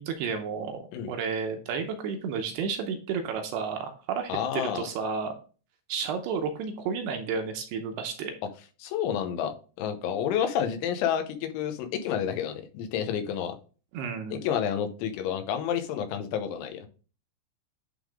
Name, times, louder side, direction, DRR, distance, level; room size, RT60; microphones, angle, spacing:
voice 1, 0.0-5.3 5.9-8.4 13.9-14.4, right 6 dB, 80° right, 5 dB, 2.6 m, -32 dB
voice 2, 4.3-4.9 8.8-13.6 14.3-16.9, left 9 dB, 85° left, 7 dB, 3.3 m, -30 dB
10.5 x 3.6 x 3.6 m, 0.37 s
omnidirectional pair, 5.3 m